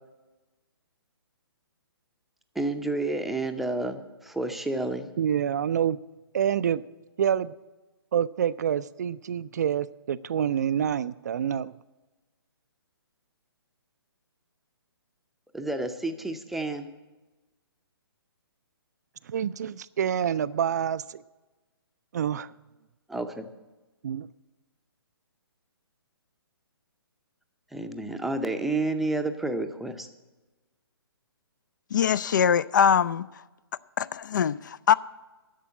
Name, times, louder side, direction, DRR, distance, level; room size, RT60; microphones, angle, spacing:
voice 1, 2.6-5.1 15.5-16.9 23.1-23.5 27.7-30.1, right 2 dB, ahead, 0.6 m, -30 dB
voice 2, 5.2-6.0 6.3-6.8 7.2-7.5 8.1-11.7 19.3-21.2 22.1-22.5 24.0-24.3, right 9 dB, 45° right, 0.4 m, -27 dB
voice 3, 31.9-33.3 34.0-34.9, left 7 dB, 50° left, 0.4 m, -22 dB
11.0 x 7.5 x 9.8 m
figure-of-eight pair, 130°, 13 cm